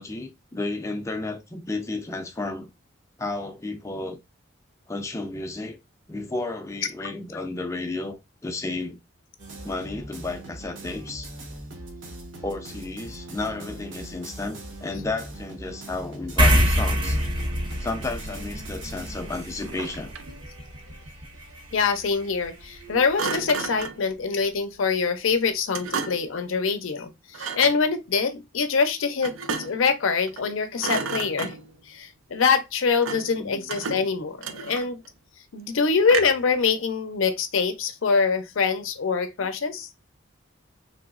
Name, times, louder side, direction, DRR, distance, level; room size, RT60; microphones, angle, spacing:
voice 1, 0.0-2.7 3.2-4.2 4.9-5.8 6.1-9.0 9.6-11.3 12.4-17.2 17.8-20.1 33.4-33.7, left 2 dB, 15° left, 0.4 m, -32 dB
sound 1, 9.4-23.2, right 1 dB, 65° right, 0.9 m, -42 dB
sound 2, 16.4-23.2, equal, 25° right, 0.6 m, -27 dB
Thump thud, 19.6-20.4 23.2-24.1 25.7-26.4 27.3-27.8 29.2-29.9 30.3-30.5 30.8-31.8 33.0-33.4 33.7-35.1 36.1-36.5, right 5 dB, 85° right, 0.5 m, -32 dB
voice 2, 21.7-27.1 27.4-29.3 29.6-31.5 31.9-35.0 35.5-39.9, left 5 dB, 80° left, 0.5 m, -24 dB
3.3 x 2.9 x 2.3 m
head